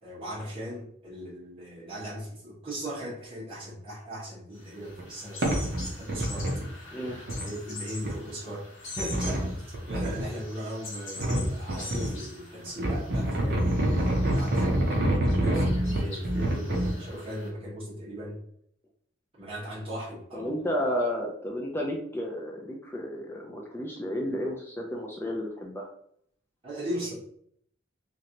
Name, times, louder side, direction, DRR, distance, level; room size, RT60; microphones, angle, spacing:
voice 1, 0.0-6.5 7.4-13.6 13.9-14.9 15.4-18.4 19.4-20.5 26.6-27.1, equal, 25° right, -7 dB, 1.3 m, -38 dB
sound 1, 4.5-17.5, left 2 dB, 90° left, 1.2 m, -44 dB
sound 2, 5.0-5.1 5.4-6.7 7.1-7.4 8.0-8.1 9.0-10.2 11.2-12.1 12.7-16.9, right 1 dB, 50° right, 0.6 m, -26 dB
voice 2, 20.3-25.9, equal, 10° left, 0 dB, 0.4 m, -32 dB
3.1 x 2.6 x 2.8 m, 0.67 s
head